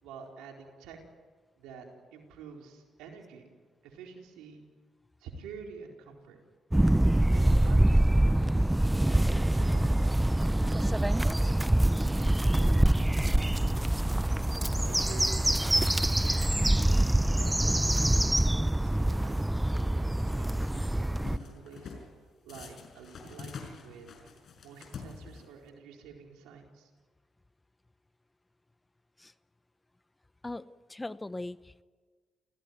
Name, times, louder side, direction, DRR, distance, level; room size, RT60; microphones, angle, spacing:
voice 1, 0.0-1.0 1.6-1.8 2.1-3.4 3.8-4.6 5.2-6.4 7.3-8.7 9.3-10.1 10.7-11.5 12.2-14.1 14.8-16.6 17.3-22.0 22.4-24.2 24.6-26.9, right 6 dB, 90° right, 1 dB, 4.3 m, -49 dB
sound 1, 6.7-21.4, right 1 dB, 10° right, 0.6 m, -25 dB
sound 2, 20.3-20.9 21.2-22.1 22.5-25.7, left 5 dB, 65° left, 5.5 m, -46 dB
voice 2, 30.4-31.8, left 2 dB, 20° left, 15 dB, 0.9 m, -40 dB
28.5 x 16.5 x 9.5 m, 1.5 s
supercardioid pair, 60°, 0 cm